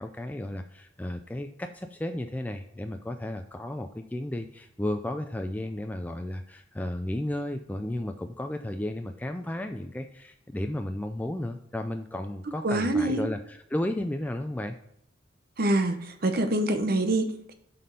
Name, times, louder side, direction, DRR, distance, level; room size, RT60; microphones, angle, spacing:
voice 1, 0.0-14.8, left 1 dB, 10° left, 6 dB, 0.3 m, -33 dB
voice 2, 12.6-13.3 15.6-17.5, right 1 dB, 50° right, 8 dB, 0.8 m, -25 dB
7.5 x 4.3 x 5.2 m, 0.75 s
head